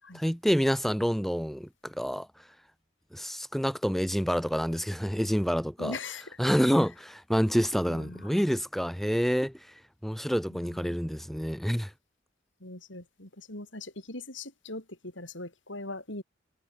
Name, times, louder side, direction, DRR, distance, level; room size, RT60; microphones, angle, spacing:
voice 1, 0.1-2.3 3.1-6.0 6.4-9.6 10.0-11.9, equal, ahead, 6.4 m, -27 dB
voice 2, 5.8-6.3 7.9-8.3 10.5-11.0 12.6-16.2, left 2 dB, 70° left, 6.9 m, -41 dB
head